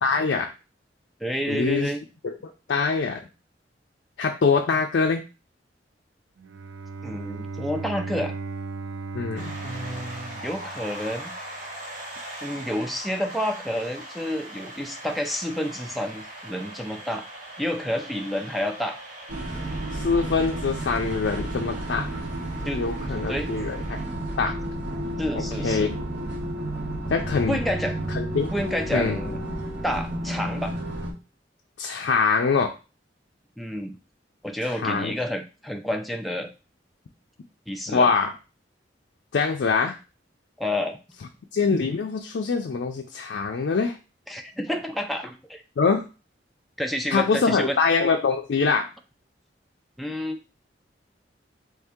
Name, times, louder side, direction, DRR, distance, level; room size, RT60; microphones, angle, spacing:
voice 1, 0.0-0.5 1.5-1.9 2.2-3.2 4.2-5.2 9.1-9.6 19.9-22.1 22.7-24.0 24.4-24.6 25.3-25.9 27.1-27.6 28.1-28.5 28.9-29.2 31.8-32.7 34.7-35.1 37.9-38.3 39.3-40.0 41.5-43.9 45.8-46.1 47.1-48.9, left 5 dB, 70° left, 3 dB, 0.4 m, -24 dB
voice 2, 1.2-2.0 7.0-8.4 9.6-11.3 12.4-17.2 17.6-19.0 22.6-23.5 25.2-25.9 27.5-28.0 28.5-29.4 29.8-30.8 33.6-34.0 34.4-36.5 37.7-38.1 40.6-41.0 44.3-45.6 46.8-47.8 50.0-50.4, equal, ahead, 3 dB, 0.3 m, -29 dB
Bowed string instrument, 6.4-11.4, right 4 dB, 85° right, 0.4 m, -36 dB
sound 1, 9.4-24.0, right 1 dB, 45° right, 1.0 m, -41 dB
sound 2, 19.3-31.1, right 1 dB, 65° right, 1.3 m, -31 dB
3.2 x 2.7 x 3.5 m, 0.31 s
head